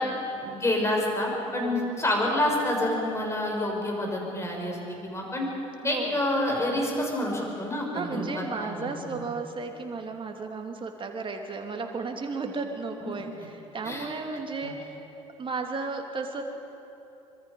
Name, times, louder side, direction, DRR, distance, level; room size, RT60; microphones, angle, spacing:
voice 1, 0.4-4.8 5.0-5.5 5.8-9.2 13.0-13.1 13.8-14.1 14.6-14.7, left 1 dB, 15° left, 0 dB, 6.6 m, -28 dB
voice 2, 1.5-2.0 5.8-6.2 7.9-15.0 15.4-16.4, right 4 dB, 30° right, 3 dB, 2.8 m, -34 dB
25.5 x 23.5 x 5.5 m, 2.9 s
figure-of-eight pair, 60°, 16 cm